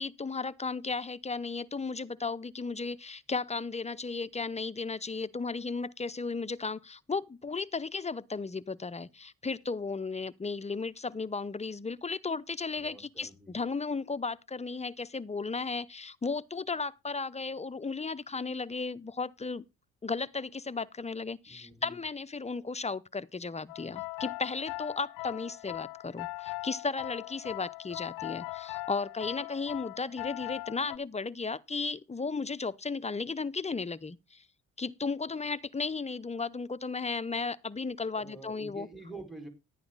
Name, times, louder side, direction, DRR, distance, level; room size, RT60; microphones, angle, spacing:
voice 1, 0.0-19.6 20.0-34.4 34.8-38.9, left 4 dB, 20° left, 0.7 m, -35 dB
voice 2, 12.8-13.5 21.5-22.0 38.1-39.5, right 3 dB, ahead, 4.9 m, -47 dB
sound 1, 23.7-31.0, left 22 dB, 85° left, 0.5 m, -40 dB
12.0 x 9.2 x 4.0 m
supercardioid pair, 55°, 33 cm